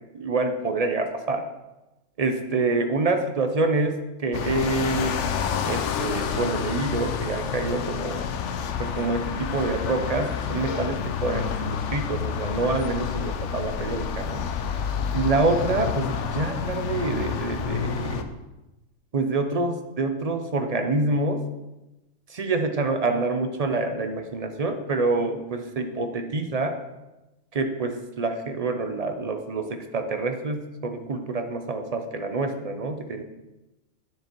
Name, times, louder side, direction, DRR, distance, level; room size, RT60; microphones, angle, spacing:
voice 1, 0.1-1.5 2.2-5.2 5.7-8.3 8.8-14.5 15.1-18.3 19.1-21.4 22.3-26.8 27.5-33.2, right 3 dB, 40° right, 6 dB, 0.6 m, -27 dB
sound 1, 4.3-18.2, left 7 dB, 70° left, 0.9 m, -29 dB
9.6 x 4.9 x 4.5 m, 1.0 s
omnidirectional pair, 1.3 m